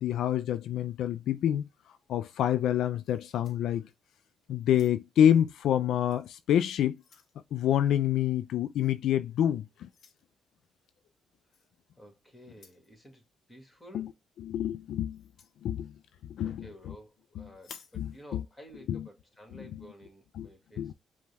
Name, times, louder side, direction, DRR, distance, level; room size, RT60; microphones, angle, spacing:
voice 1, 0.0-1.6 2.1-3.9 4.5-7.0 7.5-9.9 13.9-14.1 14.4-15.2 15.6-15.9 16.3-16.7 17.4-17.5 18.0-18.4 18.9-19.1 19.5-19.8 20.4-20.5 20.8-20.9, left 10 dB, 75° left, 0.3 m, -27 dB
sound 1, 3.0-4.2 4.6-5.3 6.1-6.2 6.7-7.4 8.8-9.0 9.9-10.2 11.5-11.7 12.5-12.9 15.1-15.6 17.5-18.0, left 6 dB, 60° left, 0.7 m, -54 dB
voice 2, 11.9-13.2 13.5-14.2 16.4-20.9, equal, 15° left, 1.8 m, -52 dB
5.1 x 2.3 x 3.3 m
cardioid pair, 90°, 0 cm